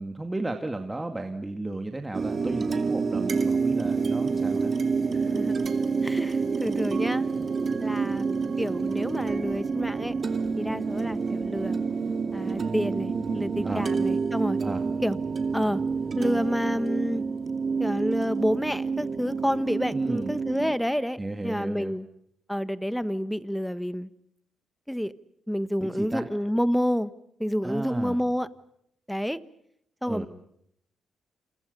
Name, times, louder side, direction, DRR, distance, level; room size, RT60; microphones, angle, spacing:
voice 1, 0.0-4.7 13.6-13.8 14.6-14.8 19.9-20.3 21.2-21.9 25.8-26.2 27.6-28.2 30.1-30.3, right 2 dB, 15° right, 5 dB, 2.2 m, -33 dB
Gated Kalimbas, 2.1-20.7, right 5 dB, 45° right, 2.5 m, -28 dB
voice 2, 5.1-5.5 6.0-7.3 7.8-10.2 10.6-11.8 12.3-14.6 15.0-15.2 15.5-15.8 16.2-17.2 17.8-22.1 22.5-24.1 24.9-25.1 25.5-27.1 27.4-28.5 29.1-29.4 30.0-30.3, equal, ahead, 13 dB, 1.3 m, -29 dB
29.0 x 28.5 x 5.4 m, 0.73 s
cardioid pair, 90°, 0 cm